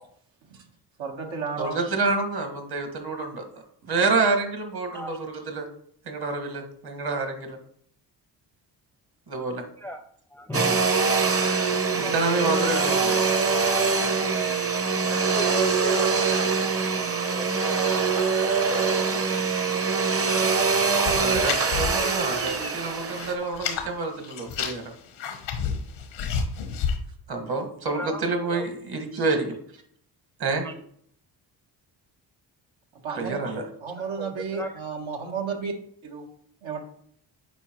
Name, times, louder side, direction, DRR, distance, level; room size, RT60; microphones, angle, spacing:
voice 1, 1.0-1.7 33.0-33.4 33.8-35.7 36.0-36.2 36.6-36.8, right 5 dB, 75° right, 2 dB, 1.3 m, -32 dB
voice 2, 1.6-3.4 3.9-5.7 6.1-7.6 9.3-9.6 12.0-13.3 21.2-24.9 27.3-29.5 30.4-30.6 33.2-33.6, right 3 dB, 50° right, 5 dB, 1.7 m, -28 dB
voice 3, 10.3-10.8 12.0-12.2 12.6-12.9 15.0-16.5 17.3-19.4 28.0-28.7 30.6-30.8 34.0-34.7, equal, 5° left, 6 dB, 0.6 m, -36 dB
Domestic sounds home sounds, 10.5-23.3, right 5 dB, 30° right, 0.9 m, -24 dB
sound 1, 21.0-22.6 22.9-23.9 24.2-27.0, left 6 dB, 90° left, 1.1 m, -30 dB
8.1 x 4.7 x 3.0 m, 0.64 s
cardioid pair, 75°, 46 cm